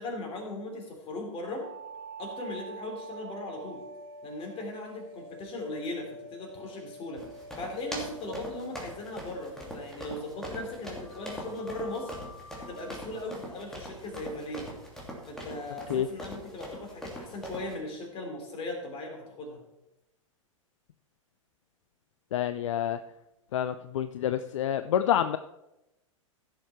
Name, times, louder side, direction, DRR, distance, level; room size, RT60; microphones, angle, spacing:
voice 1, 0.0-1.6 2.2-3.8 4.2-7.3 7.5-12.1 12.6-14.7 15.3-19.6, left 2 dB, 30° left, 2 dB, 3.6 m, -38 dB
sound 1, 1.3-10.1 11.0-15.8, right 2 dB, 40° right, 3.9 m, -48 dB
sound 2, 7.2-17.7, equal, 5° left, 2.7 m, -41 dB
voice 2, 22.3-23.0 23.5-25.4, left 10 dB, 65° left, 11 dB, 0.5 m, -28 dB
15.5 x 6.7 x 4.5 m, 0.91 s
figure-of-eight pair, 100°, 17 cm